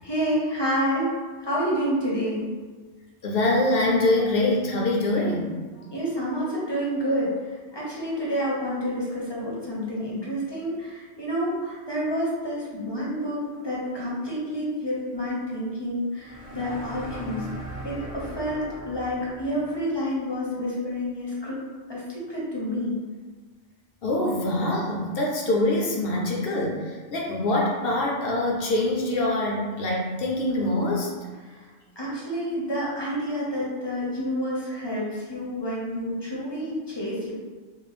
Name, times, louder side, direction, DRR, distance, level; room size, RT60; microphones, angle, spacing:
voice 1, 0.0-1.1 1.4-2.4 5.9-17.5 17.8-21.6 21.9-23.0 31.5-31.7 32.0-37.3, equal, 30° left, -6 dB, 0.6 m, -29 dB
voice 2, 3.2-5.5 24.0-31.1, left 1 dB, 65° left, -2 dB, 0.7 m, -24 dB
sound 1, 16.2-19.9, equal, 85° left, 1.3 m, -39 dB
3.5 x 2.0 x 3.3 m, 1.4 s
omnidirectional pair, 1.2 m